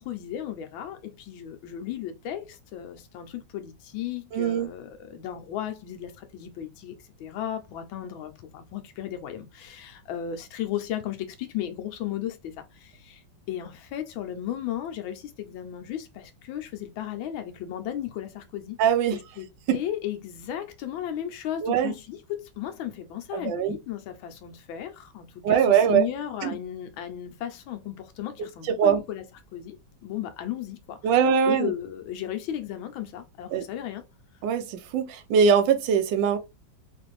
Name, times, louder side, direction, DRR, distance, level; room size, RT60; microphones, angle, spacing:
voice 1, 0.0-13.2 13.5-18.8 19.1-19.5 19.7-29.2 29.5-29.8 30.0-31.1 31.5-34.0, left 11 dB, 90° left, 1.5 m, -35 dB
voice 2, 4.3-4.7 18.8-19.2 19.7-19.8 21.6-21.9 23.3-23.8 25.4-26.0 26.4-26.6 28.6-29.0 31.0-31.7 33.5-33.6 34.4-36.4, right 7 dB, 75° right, 1.3 m, -22 dB
3.9 x 2.5 x 3.0 m
omnidirectional pair, 2.1 m